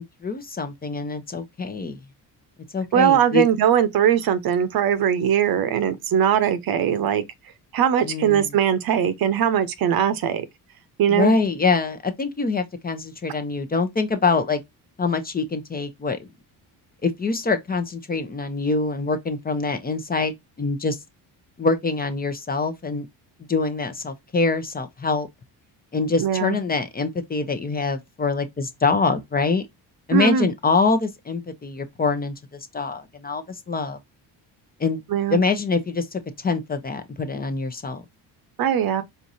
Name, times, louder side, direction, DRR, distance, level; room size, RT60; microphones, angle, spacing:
voice 1, 0.0-2.0 2.7-3.5 8.0-8.5 11.1-14.6 15.0-16.3 17.0-21.0 21.6-23.1 23.5-25.3 25.9-29.6 30.1-32.3 32.7-34.0 34.8-35.0 35.3-38.0, left 4 dB, 20° left, 0.7 m, -24 dB
voice 2, 2.9-7.2 7.7-10.4 11.0-11.4 26.2-26.6 30.1-30.5 35.1-35.4 38.6-39.0, right 9 dB, 60° right, 0.8 m, -20 dB
4.6 x 2.7 x 2.6 m
cardioid pair, 115°, 41 cm